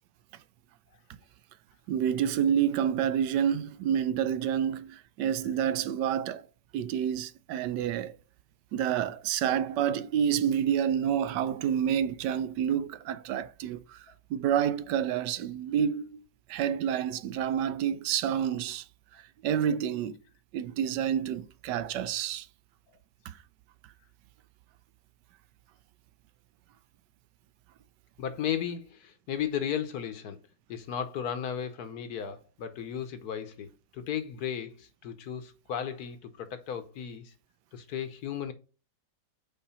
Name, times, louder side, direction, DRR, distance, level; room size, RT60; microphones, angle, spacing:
voice 1, 1.9-6.5 6.7-8.2 8.7-14.0 14.3-16.2 16.5-18.8 19.4-20.2 20.5-22.5 23.3-23.4, right 9 dB, 80° right, 1.2 m, -28 dB
voice 2, 28.2-30.4 30.7-33.7 33.9-37.3 37.7-38.5, left 8 dB, 65° left, 1.3 m, -35 dB
5.7 x 4.4 x 5.5 m
omnidirectional pair, 1.9 m